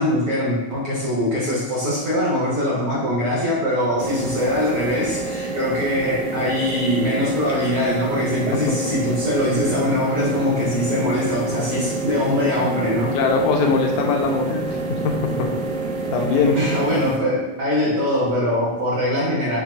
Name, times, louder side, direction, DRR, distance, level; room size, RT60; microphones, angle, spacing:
voice 1, 0.0-13.1 16.5-19.6, left 1 dB, 65° right, -6 dB, 1.5 m, -22 dB
sound 1, 4.0-17.2, right 3 dB, 90° right, 2.1 m, -27 dB
voice 2, 13.1-14.8 15.0-15.1 15.4-15.5 16.1-16.6, left 4 dB, 80° left, 1 dB, 1.9 m, -20 dB
7.1 x 3.2 x 2.3 m, 1.1 s
omnidirectional pair, 3.5 m